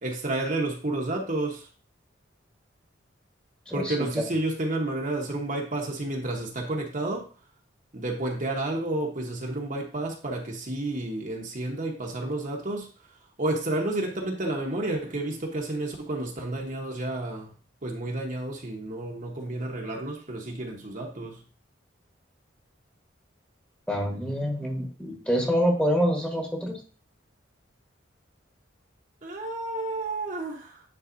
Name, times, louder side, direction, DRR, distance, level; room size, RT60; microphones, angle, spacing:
voice 1, 0.0-1.7 3.7-7.3 7.9-12.9 13.4-17.5 17.8-21.4 29.2-30.8, right 2 dB, 45° right, 1 dB, 1.1 m, -31 dB
voice 2, 3.7-4.2 23.9-26.8, equal, 5° left, 0 dB, 1.3 m, -26 dB
9.5 x 4.0 x 2.6 m, 0.38 s
head